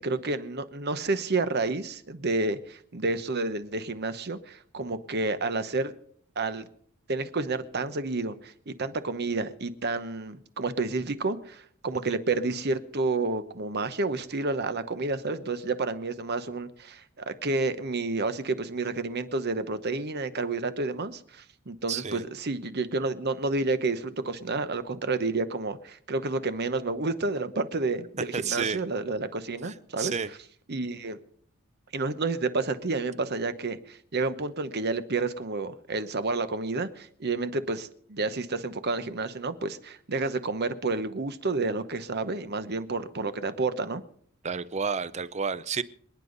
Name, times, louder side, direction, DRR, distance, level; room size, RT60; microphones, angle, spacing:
voice 1, 0.0-5.9 6.4-6.7 7.1-30.1 30.7-31.2 31.9-44.0, right 3 dB, 50° right, 11 dB, 1.0 m, -30 dB
voice 2, 21.9-22.2 28.3-28.8 29.6-30.3 44.4-45.8, right 6 dB, 35° right, 15 dB, 0.6 m, -31 dB
26.5 x 9.7 x 4.0 m, 0.63 s
head